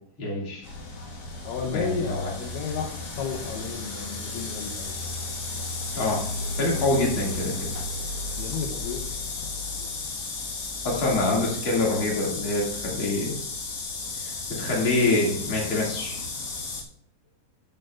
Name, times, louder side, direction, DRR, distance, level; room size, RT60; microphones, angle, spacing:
voice 1, 0.2-0.7 1.7-2.3 5.9-6.2 6.6-7.7 10.8-13.4 14.1-16.2, left 2 dB, 40° left, -3 dB, 2.9 m, -26 dB
sound 1, 0.6-16.8, left 3 dB, 60° left, 2.8 m, -33 dB
voice 2, 1.4-4.9 8.4-9.1, left 5 dB, 75° left, 1 dB, 2.4 m, -33 dB
12.5 x 7.7 x 2.5 m, 0.71 s
omnidirectional pair, 4.0 m